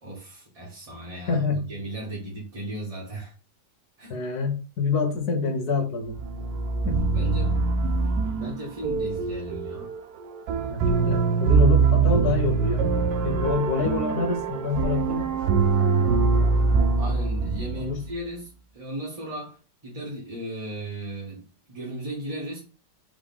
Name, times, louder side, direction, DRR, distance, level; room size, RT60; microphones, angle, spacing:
voice 1, 0.0-3.3 4.0-4.1 7.1-7.6 8.1-9.9 17.0-22.6, right 1 dB, 25° right, -4 dB, 1.0 m, -36 dB
voice 2, 1.3-1.6 4.1-6.2 6.8-7.0 10.7-12.9 13.2-15.3 17.7-18.0, left 4 dB, 65° left, 4 dB, 1.5 m, -26 dB
sound 1, 6.1-18.1, right 5 dB, 70° right, 1.0 m, -23 dB
4.0 x 3.7 x 3.4 m, 0.36 s
omnidirectional pair, 1.9 m